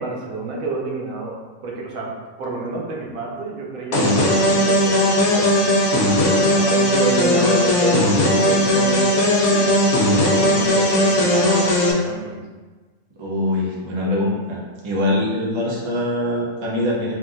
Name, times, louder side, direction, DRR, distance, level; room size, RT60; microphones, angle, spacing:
voice 1, 0.0-2.1 2.4-5.6 6.2-8.2 8.4-9.7 10.1-12.4, right 3 dB, 85° right, -1 dB, 1.1 m, -29 dB
sound 1, 3.9-11.9, left 1 dB, 65° left, 0.9 m, -17 dB
voice 2, 13.2-14.6 14.8-17.1, left 1 dB, 40° right, -4 dB, 0.4 m, -23 dB
3.6 x 2.5 x 2.4 m, 1.3 s
omnidirectional pair, 1.4 m